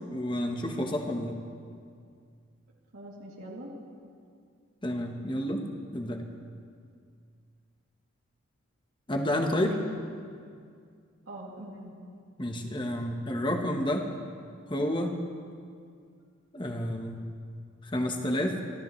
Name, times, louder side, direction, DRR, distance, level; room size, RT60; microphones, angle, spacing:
voice 1, 0.1-1.4 4.8-6.2 9.1-9.7 12.4-14.1 14.7-15.2 16.5-17.3 17.8-18.6, left 1 dB, 25° left, 3 dB, 1.2 m, -30 dB
voice 2, 2.9-3.7 9.6-9.8 11.3-12.0, right 1 dB, 85° right, -4 dB, 2.8 m, -44 dB
24.5 x 15.5 x 3.2 m, 2.2 s
head